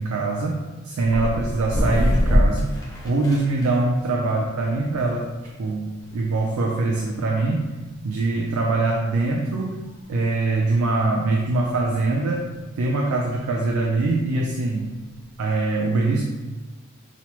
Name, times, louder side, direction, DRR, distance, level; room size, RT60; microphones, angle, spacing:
voice 1, 0.0-2.7 3.0-5.3 5.6-7.7 8.0-9.8 10.1-12.5 12.8-14.9 15.4-16.2, right 2 dB, 75° right, -1 dB, 0.3 m, -23 dB
sound 1, 1.0-15.4, equal, 15° left, 0.5 m, -29 dB
2.9 x 2.0 x 2.9 m, 1.2 s
head